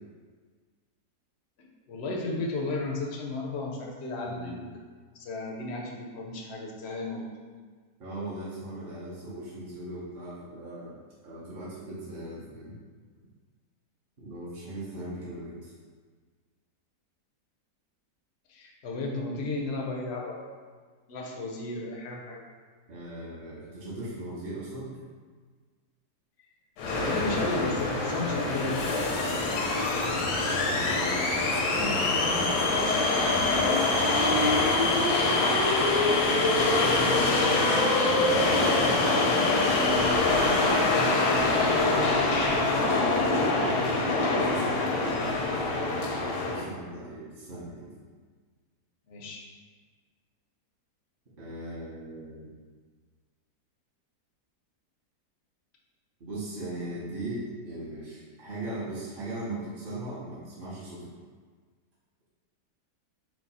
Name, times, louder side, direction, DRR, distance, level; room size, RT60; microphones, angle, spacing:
voice 1, 1.6-4.7 5.1-7.3 18.5-20.5 21.1-22.4 26.9-29.1 36.9-37.9 40.9-43.8 49.1-49.4, left 2 dB, 65° left, -1 dB, 0.6 m, -34 dB
voice 2, 4.2-4.6 8.0-10.9 11.2-12.8 14.2-15.7 22.9-24.9 30.7-31.4 31.6-35.0 36.6-37.6 38.0-39.5 45.4-47.9 51.4-52.5 56.2-61.1, right 1 dB, 45° right, -8 dB, 0.7 m, -39 dB
sound 1, 26.8-46.6, left 2 dB, 90° left, 1.3 m, -24 dB
4.6 x 2.2 x 4.1 m, 1.5 s
omnidirectional pair, 1.8 m